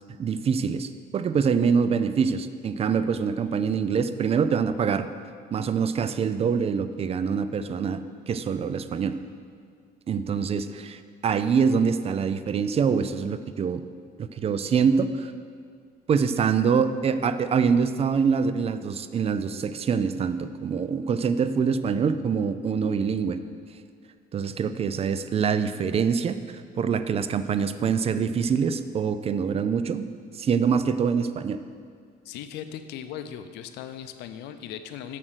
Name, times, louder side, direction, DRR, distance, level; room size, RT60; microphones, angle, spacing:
voice 1, 0.2-5.1 5.5-8.0 8.3-9.2 10.1-13.8 14.2-15.3 16.1-23.4 24.3-30.0 30.3-31.6, right 6 dB, 35° right, 12 dB, 0.4 m, -25 dB
voice 2, 32.2-35.2, left 9 dB, 90° left, 10 dB, 0.6 m, -38 dB
7.3 x 6.6 x 6.3 m, 2.1 s
cardioid pair, 110°, 17 cm